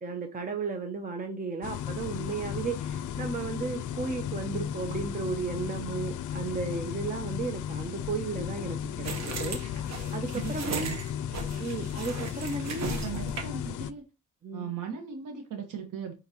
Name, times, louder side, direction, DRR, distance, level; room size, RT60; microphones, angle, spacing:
voice 1, 0.0-9.8 10.1-10.9 11.6-12.9 14.4-14.7, right 4 dB, 25° right, 0.8 m, -34 dB
sound 1, 1.6-13.9, left 9 dB, 70° left, 0.5 m, -35 dB
sound 2, 9.0-13.7, right 5 dB, 60° right, 1.2 m, -38 dB
voice 2, 10.3-11.0 12.8-14.0 14.5-16.1, right 7 dB, 80° right, 1.4 m, -38 dB
8.6 x 4.0 x 3.0 m
cardioid pair, 125°, 31 cm